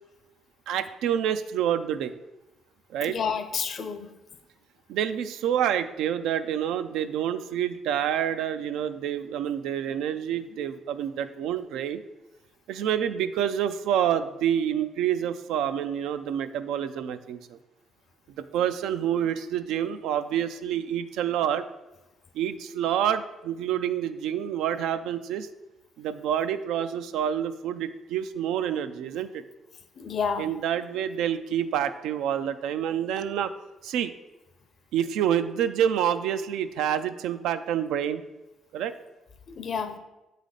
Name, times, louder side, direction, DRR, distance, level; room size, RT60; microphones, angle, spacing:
voice 1, 0.7-2.1 2.9-3.2 4.9-12.0 12.7-17.6 18.5-21.6 22.3-25.5 26.0-29.4 30.4-33.5 33.8-34.1 34.9-38.2 38.7-38.9, right 9 dB, 90° right, 11 dB, 0.3 m, -27 dB
voice 2, 3.0-4.1 30.0-30.5 39.5-40.0, left 6 dB, 55° left, 8 dB, 0.6 m, -30 dB
7.3 x 3.3 x 3.9 m, 0.99 s
cardioid pair, 90°, 0 cm